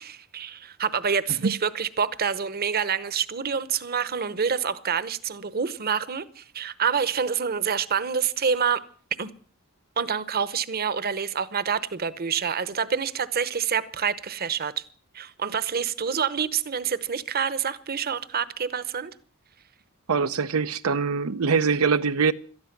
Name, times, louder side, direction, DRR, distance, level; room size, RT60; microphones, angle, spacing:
voice 1, 0.0-8.8 9.2-9.3 10.0-14.8 15.1-19.1, right 6 dB, 45° right, 0.9 m, -27 dB
voice 2, 20.1-22.3, right 5 dB, 85° right, 0.7 m, -23 dB
18.0 x 13.0 x 6.0 m
head